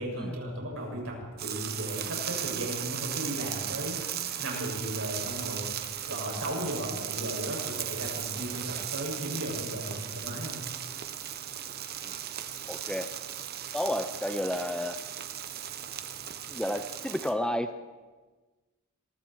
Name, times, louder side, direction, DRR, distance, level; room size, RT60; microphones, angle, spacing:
voice 1, 0.0-10.7, right 1 dB, 70° right, -1 dB, 7.6 m, -36 dB
sound 1, 1.4-17.3, right 10 dB, 45° right, 1.1 m, -37 dB
voice 2, 12.7-13.1 13.7-15.0 16.5-17.7, left 1 dB, 5° left, 9 dB, 0.7 m, -31 dB
26.5 x 22.0 x 4.7 m, 1.3 s
head